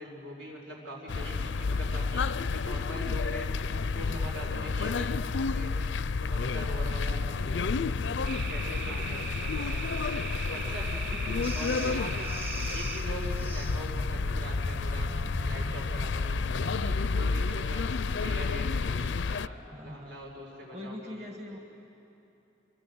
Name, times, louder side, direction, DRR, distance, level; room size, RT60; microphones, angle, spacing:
voice 1, 0.0-3.5 3.8-5.1 5.5-8.0 8.3-11.2 11.5-12.3 12.7-15.1 15.4-17.9 18.2-18.7 18.9-21.3, equal, 80° right, -1 dB, 5.5 m, -42 dB
sound 1, 1.1-19.5, left 4 dB, 80° left, 0.5 m, -30 dB
sound 2, 8.2-17.0, right 2 dB, 50° right, 1.8 m, -38 dB
voice 2, 11.2-12.0 19.7-20.2 20.7-21.6, left 1 dB, 35° right, 1 dB, 1.6 m, -43 dB
sound 3, 11.4-13.9 18.0-18.3, equal, 10° right, 0.8 m, -44 dB
27.0 x 24.5 x 7.9 m, 2.9 s
head